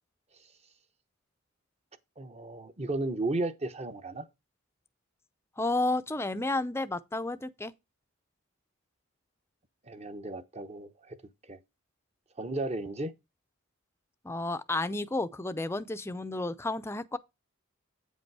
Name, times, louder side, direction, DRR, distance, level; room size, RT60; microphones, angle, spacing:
voice 1, 2.2-4.2 9.8-11.2 11.5-11.6 12.4-13.1, right 2 dB, 30° right, 0.9 m, -34 dB
voice 2, 5.6-7.7 14.2-17.2, left 2 dB, 10° left, 0.5 m, -31 dB
8.9 x 5.2 x 4.7 m
head